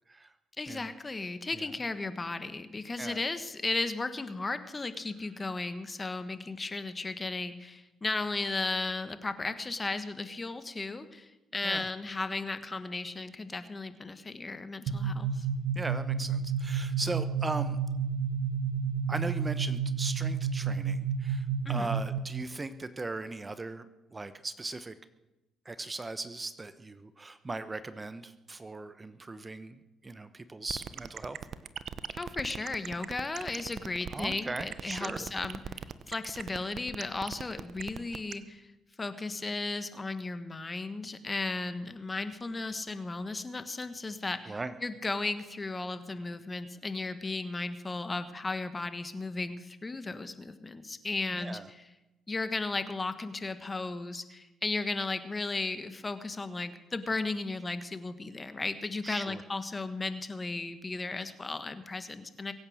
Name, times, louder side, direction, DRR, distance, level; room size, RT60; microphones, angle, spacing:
voice 1, 0.6-15.5 21.6-21.9 32.1-38.7 39.0-51.9 52.3-62.5, left 3 dB, 25° left, 11 dB, 1.4 m, -35 dB
sound 1, 14.9-22.4, right 6 dB, 80° right, 1.2 m, -31 dB
voice 2, 15.7-17.8 19.1-23.8 24.1-24.9 25.6-31.4 34.1-35.3 44.4-44.7 51.3-51.7 59.0-59.4, right 3 dB, 25° right, 12 dB, 0.9 m, -38 dB
sound 2, 30.7-38.3, right 8 dB, 55° right, 0.9 m, -39 dB
23.0 x 8.9 x 6.4 m, 1.0 s
supercardioid pair, 75°, 0 cm